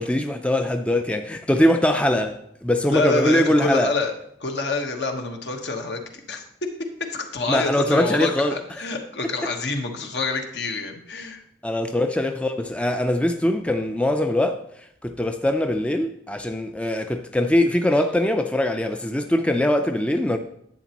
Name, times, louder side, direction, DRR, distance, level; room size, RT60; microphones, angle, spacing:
voice 1, 0.0-3.9 7.5-8.6 9.4-9.5 11.6-14.6 15.0-20.4, left 1 dB, 5° left, 0.4 m, -22 dB
voice 2, 2.9-4.1 4.4-6.4 7.1-11.4, left 3 dB, 75° left, 1.3 m, -27 dB
11.0 x 8.1 x 3.0 m
head